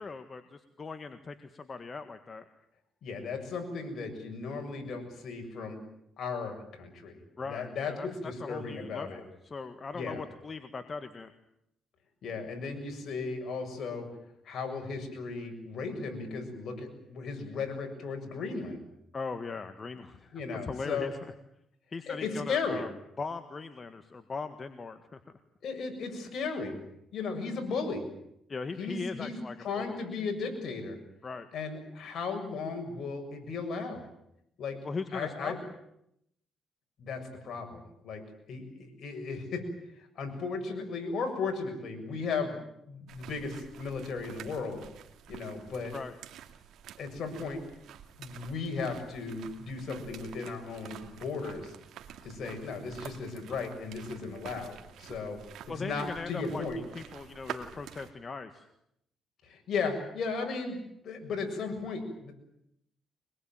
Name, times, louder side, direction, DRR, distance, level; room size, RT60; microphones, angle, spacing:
voice 1, 0.0-2.4 7.4-11.3 19.1-21.1 21.9-22.9 23.2-25.2 28.5-30.0 31.2-31.5 34.8-35.5 45.9-46.1 55.7-56.6 56.9-58.6, left 4 dB, 35° left, 9 dB, 1.7 m, -39 dB
voice 2, 3.0-5.8 6.2-7.2 7.4-9.2 9.9-10.2 12.2-14.1 14.4-18.8 20.3-21.1 22.1-22.8 25.6-26.8 27.1-28.0 28.8-31.0 31.5-34.0 34.6-34.8 35.1-35.6 37.0-39.6 40.0-42.6 42.9-44.8 45.3-45.9 47.0-47.6 48.2-51.7 52.2-55.4 55.7-56.8 59.4-62.3, left 4 dB, 65° left, 4 dB, 6.9 m, -36 dB
sound 1, 43.1-58.1, right 9 dB, 80° right, 2.4 m, -48 dB
24.0 x 21.5 x 9.1 m, 0.77 s
cardioid pair, 90°, 0 cm